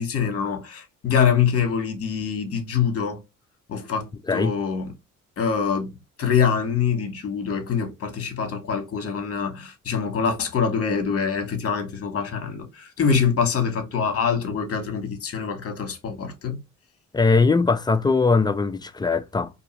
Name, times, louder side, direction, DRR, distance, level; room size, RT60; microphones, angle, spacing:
voice 1, 0.0-3.2 3.7-4.9 5.4-5.9 6.2-16.6, left 6 dB, 50° left, 1.1 m, -24 dB
voice 2, 17.1-19.5, left 4 dB, 15° left, 0.3 m, -20 dB
2.6 x 2.4 x 3.0 m
cardioid pair, 90°, 30 cm